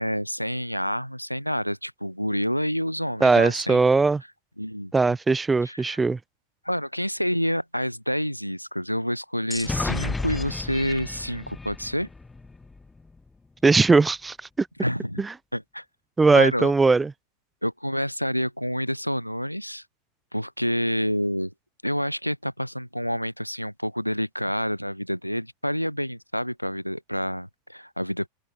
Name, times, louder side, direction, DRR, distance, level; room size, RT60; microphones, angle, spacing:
voice 1, 0.0-3.8 4.6-4.9 5.6-6.0 6.6-12.1 14.8-15.2 15.5-15.8 16.3-16.7 17.6-19.8 20.3-21.5 21.8-28.3, equal, 90° left, 1.6 m, -28 dB
voice 2, 3.2-4.2 4.9-6.2 13.6-14.7 15.2-15.3 16.2-17.1, right 4 dB, 10° right, 0.4 m, -19 dB
sound 1, 9.5-13.2, left 3 dB, 10° left, 2.5 m, -33 dB
figure-of-eight pair, 90°, 0 cm